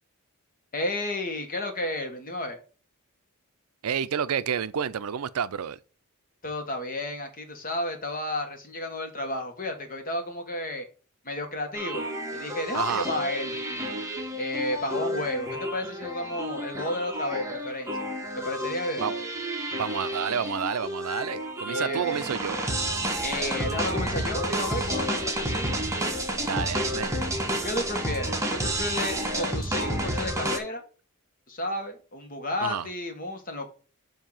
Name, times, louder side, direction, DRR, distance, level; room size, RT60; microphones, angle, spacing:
voice 1, 0.7-2.6 6.4-10.8 11.2-12.0 12.3-14.0 14.4-18.1 18.4-19.1 21.7-22.3 23.2-25.8 27.6-30.8 31.5-33.7, left 1 dB, 40° left, 1.3 m, -32 dB
voice 2, 3.8-5.8 12.7-13.1 19.0-19.1 19.7-22.6 26.4-27.2 32.6-32.9, right 8 dB, 70° right, 0.4 m, -30 dB
sound 1, 11.8-30.6, right 1 dB, 15° right, 1.0 m, -30 dB
7.3 x 2.8 x 5.5 m
head